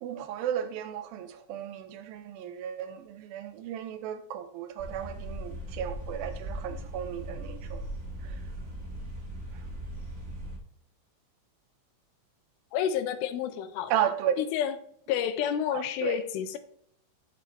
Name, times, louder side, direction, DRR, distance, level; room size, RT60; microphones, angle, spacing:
voice 1, 0.0-7.9 8.2-8.4 13.9-14.4 15.7-16.2, right 9 dB, 85° right, 2.4 m, -34 dB
sound 1, 4.8-10.6, right 1 dB, 55° right, 0.8 m, -39 dB
voice 2, 12.7-13.9 14.4-14.8 15.1-16.6, left 9 dB, 85° left, 2.5 m, -29 dB
8.4 x 6.5 x 3.0 m
omnidirectional pair, 4.2 m